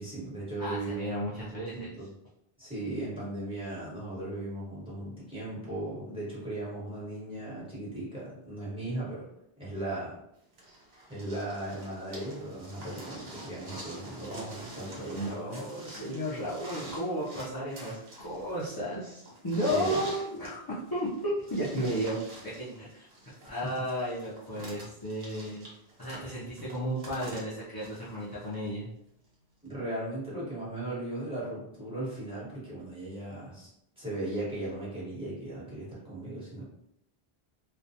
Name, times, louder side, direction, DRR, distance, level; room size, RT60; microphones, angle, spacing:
voice 1, 0.0-1.1 1.4-2.1 2.6-9.3 9.6-10.1 11.1-15.6 19.7-20.1 29.6-33.7 34.0-36.6, right 1 dB, 5° right, -9 dB, 1.1 m, -37 dB
voice 2, 0.6-1.9 15.1-23.1 23.5-25.7 26.0-28.9, equal, 40° left, -9 dB, 0.3 m, -33 dB
sound 1, 10.6-28.7 29.7-29.8, right 1 dB, 85° right, 1.1 m, -46 dB
2.3 x 2.1 x 2.7 m, 0.77 s
omnidirectional pair, 1.0 m